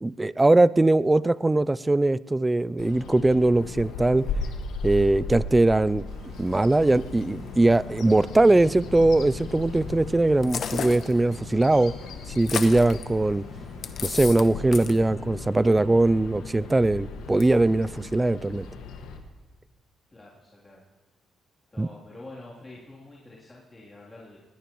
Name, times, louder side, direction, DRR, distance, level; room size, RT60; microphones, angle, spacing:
voice 1, 0.0-4.2 4.8-6.0 6.4-11.9 12.4-13.4 14.0-18.7 21.8-21.9, right 2 dB, 15° right, 18 dB, 0.4 m, -21 dB
Bird vocalization bird call bird song, 2.8-19.2, left 4 dB, 90° left, 1.7 m, -37 dB
sound 1, 6.0-14.1, right 3 dB, 65° right, 4.5 m, -57 dB
sound 2, 10.4-11.1 12.4-13.0 13.8-14.5 14.7-15.0, left 7 dB, 60° left, 1.0 m, -32 dB
voice 2, 20.1-20.8 21.7-24.4, left 2 dB, 20° left, -6 dB, 3.1 m, -46 dB
20.5 x 17.0 x 3.1 m, 1.3 s
cardioid pair, 90°, 0 cm